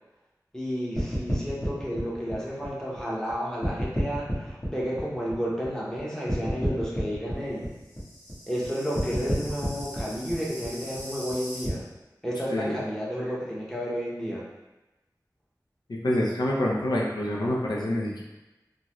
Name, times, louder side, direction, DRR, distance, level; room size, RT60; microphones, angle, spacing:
voice 1, 0.5-7.7 8.5-11.8 12.2-14.5, equal, 10° left, -5 dB, 0.9 m, -31 dB
sound 1, 1.0-3.3 3.6-6.0 6.3-11.7, equal, 35° left, 1.2 m, -31 dB
voice 2, 15.9-18.2, left 1 dB, 80° left, -4 dB, 0.5 m, -27 dB
3.6 x 2.1 x 3.0 m, 1.0 s
wide cardioid pair, 45°, 7 cm